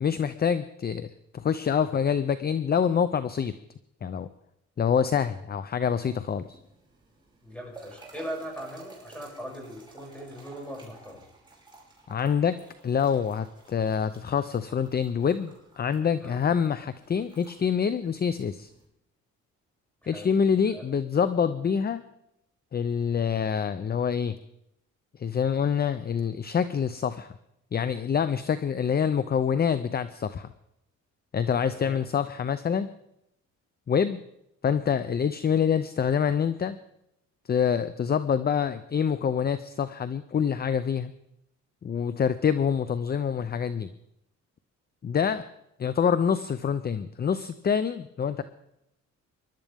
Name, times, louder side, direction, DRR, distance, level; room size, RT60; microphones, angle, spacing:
voice 1, 0.0-3.5 4.0-4.3 4.8-6.6 12.1-18.7 20.1-22.0 22.7-24.4 25.2-27.3 27.7-30.5 31.3-32.9 33.9-34.2 34.6-36.8 37.5-41.1 41.8-43.9 45.0-45.4 45.8-48.4, left 7 dB, 30° left, 13 dB, 0.6 m, -26 dB
sound 1, 5.9-18.9, right 3 dB, 15° right, 5.7 m, -53 dB
voice 2, 7.4-11.2 16.2-16.4 20.0-20.4 20.7-20.8 31.7-32.0, equal, 5° left, -1 dB, 7.0 m, -40 dB
24.5 x 12.0 x 3.6 m, 0.80 s
cardioid pair, 90°, 30 cm